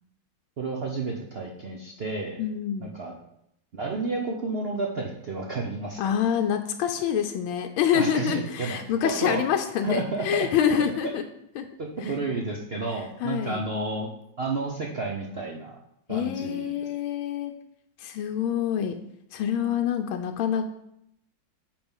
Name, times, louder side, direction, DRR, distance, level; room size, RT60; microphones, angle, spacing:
voice 1, 0.6-2.4 2.8-3.2 3.7-6.0 7.9-9.4 9.8-10.5 11.8-14.1 14.4-15.8 16.1-16.7, right 3 dB, 65° right, -1 dB, 0.6 m, -31 dB
voice 2, 2.4-2.9 6.0-11.3 11.6-11.7 12.0-12.1 13.2-13.6 16.1-17.5 18.0-18.9 19.3-20.7, left 9 dB, 90° left, 6 dB, 1.5 m, -26 dB
8.8 x 3.8 x 5.5 m, 0.76 s
omnidirectional pair, 2.2 m